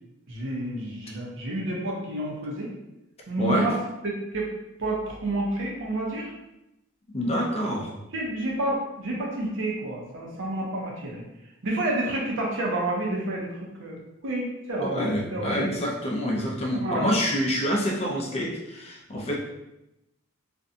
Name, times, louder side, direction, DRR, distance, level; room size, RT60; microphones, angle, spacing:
voice 1, 0.3-2.7 3.3-3.8 4.0-4.5 4.8-6.3 8.1-11.2 11.6-13.5 13.8-15.7 16.8-17.1, right 1 dB, 65° right, -3 dB, 0.7 m, -29 dB
voice 2, 3.4-3.7 7.1-7.9 14.8-19.4, equal, 30° left, -1 dB, 0.4 m, -27 dB
2.5 x 2.2 x 2.6 m, 0.90 s
head